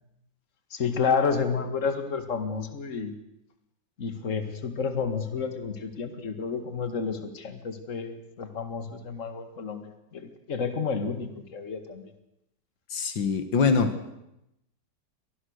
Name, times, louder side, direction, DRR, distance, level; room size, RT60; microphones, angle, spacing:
voice 1, 0.7-3.1 4.0-12.0, left 5 dB, 45° left, 8 dB, 2.2 m, -30 dB
voice 2, 12.9-14.1, left 5 dB, 85° left, 9 dB, 2.3 m, -24 dB
25.0 x 19.0 x 6.5 m, 0.84 s
omnidirectional pair, 2.0 m